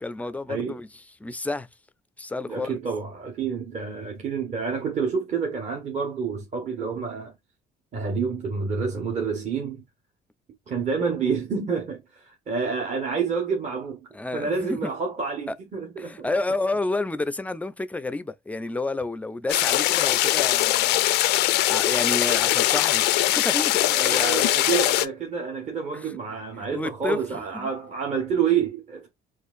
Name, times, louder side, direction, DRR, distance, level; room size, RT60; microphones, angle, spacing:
voice 1, 0.0-1.7 2.2-2.8 14.1-14.9 15.5-15.6 16.0-21.4 21.7-24.9 25.9-26.2 26.5-27.7, left 2 dB, 10° left, 0.4 m, -30 dB
voice 2, 2.5-7.3 7.9-9.8 10.7-16.3 21.2-21.3 23.8-29.1, right 6 dB, 40° right, 1.1 m, -28 dB
sound 1, 19.5-25.1, left 16 dB, 85° left, 0.4 m, -21 dB
4.3 x 2.4 x 2.4 m
cardioid pair, 110°, 17 cm